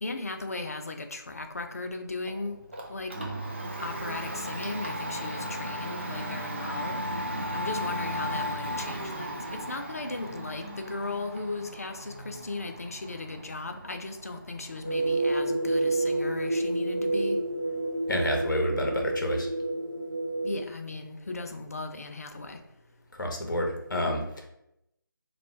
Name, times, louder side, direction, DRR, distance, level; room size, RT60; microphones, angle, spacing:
voice 1, 0.0-2.6 2.9-3.1 3.8-7.0 7.5-17.4 20.4-22.6, left 2 dB, 45° left, 6 dB, 0.4 m, -36 dB
Domestic sounds home sounds, 2.3-18.1, equal, 30° right, 0.4 m, -37 dB
sound 1, 14.8-20.6, right 2 dB, 20° left, 1.0 m, -29 dB
voice 2, 18.1-19.5 23.1-24.5, left 1 dB, 60° left, 2 dB, 0.9 m, -29 dB
3.0 x 2.2 x 4.1 m, 0.81 s
figure-of-eight pair, 160°, 12 cm